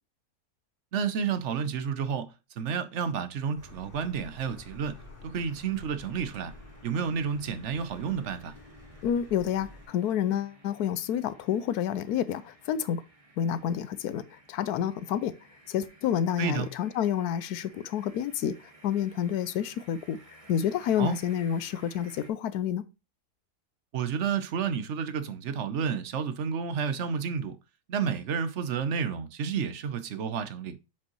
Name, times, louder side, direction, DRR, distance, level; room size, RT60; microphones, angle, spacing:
voice 1, 0.9-5.0 5.2-6.5 6.8-8.5 16.4-16.7 21.0-21.2 23.9-27.6 27.9-30.8, right 6 dB, 55° right, 0.9 m, -30 dB
Car, 3.6-9.9, left 2 dB, 35° left, 2.4 m, -50 dB
sound 1, 5.3-22.3, right 1 dB, 25° right, 1.1 m, -56 dB
voice 2, 9.0-13.0 13.4-15.4 15.7-18.6 18.8-20.2 20.5-22.9, left 9 dB, 80° left, 1.1 m, -29 dB
7.3 x 5.1 x 3.0 m
omnidirectional pair, 1.7 m